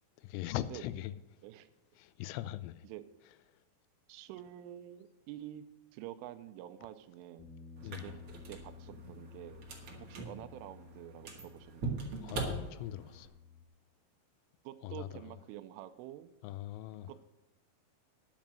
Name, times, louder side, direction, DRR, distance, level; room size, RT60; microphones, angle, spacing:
voice 1, 0.2-1.1 2.0-2.8 7.8-8.1 12.2-13.3 14.8-15.2 16.4-17.1, left 14 dB, 85° left, 3.1 m, -40 dB
voice 2, 4.1-5.6 5.9-7.5 7.8-8.1 8.5-9.7 9.9-12.1 14.6-16.3 17.1-17.3, right 13 dB, 90° right, 3.3 m, -48 dB
Bass guitar, 7.4-13.6, left 6 dB, 65° left, 2.2 m, -54 dB
sound 1, 7.8-13.3, right 3 dB, 55° right, 1.6 m, -42 dB
10.5 x 7.2 x 7.5 m
omnidirectional pair, 5.5 m